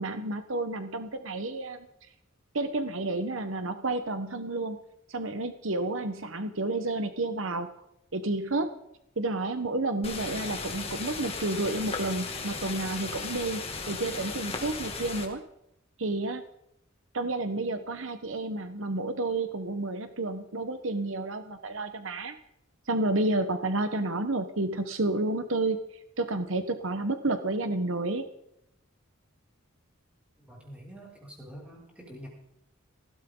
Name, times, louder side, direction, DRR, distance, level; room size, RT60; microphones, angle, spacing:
voice 1, 0.0-1.9 2.5-4.8 5.1-7.7 8.1-8.7 9.2-13.6 13.9-15.4 16.0-16.4 17.1-22.4 22.9-25.8 26.2-28.3, right 2 dB, 70° right, 9 dB, 1.3 m, -30 dB
sound 1, 10.0-15.3, left 4 dB, 30° left, 2.4 m, -36 dB
voice 2, 30.4-32.3, equal, 5° right, -3 dB, 6.1 m, -46 dB
19.5 x 16.5 x 4.0 m, 0.79 s
head